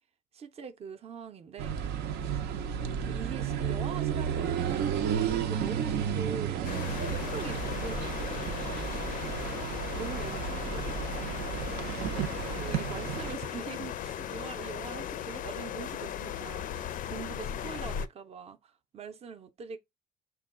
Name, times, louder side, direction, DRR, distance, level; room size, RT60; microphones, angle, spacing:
voice 1, 0.3-1.8 3.0-9.2 9.9-11.0 12.3-19.8, right 6 dB, 40° right, 0.6 m, -43 dB
street short, 1.6-13.4, right 8 dB, 75° right, 0.7 m, -32 dB
sound 1, 6.6-18.1, left 10 dB, 55° left, 0.4 m, -37 dB
5.9 x 2.3 x 3.6 m
cardioid pair, 110°, 17 cm